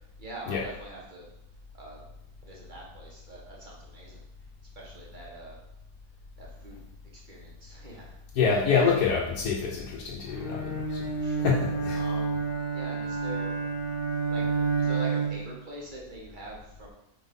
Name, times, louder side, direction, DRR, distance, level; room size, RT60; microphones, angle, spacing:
voice 1, 0.2-1.3 1.7-2.0 2.4-4.2 4.7-5.6 6.4-6.8 7.1-8.1 11.1-11.7 11.9-12.4 12.7-13.5 14.3-14.4 14.8-16.9, right 2 dB, 30° right, -3 dB, 1.5 m, -43 dB
voice 2, 8.3-11.1 11.4-12.0, left 5 dB, 70° left, -4 dB, 1.3 m, -26 dB
Bowed string instrument, 10.3-15.6, right 4 dB, 40° left, 0.9 m, -29 dB
4.6 x 4.1 x 5.2 m, 0.80 s
omnidirectional pair, 1.7 m